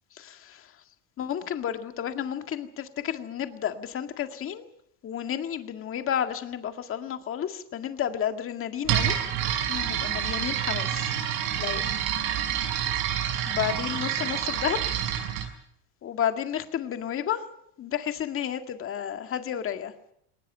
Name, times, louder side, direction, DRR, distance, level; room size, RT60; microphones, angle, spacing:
voice 1, 0.2-0.7 1.2-4.7 5.0-9.2 9.6-11.1 11.6-11.9 13.4-14.8 16.0-17.4 17.8-19.9, left 9 dB, 35° left, 7 dB, 2.0 m, -31 dB
sound 1, 8.8-15.5, right 10 dB, 75° right, 5.9 m, -28 dB
20.0 x 19.5 x 9.1 m, 0.73 s
cardioid pair, 130°, 35 cm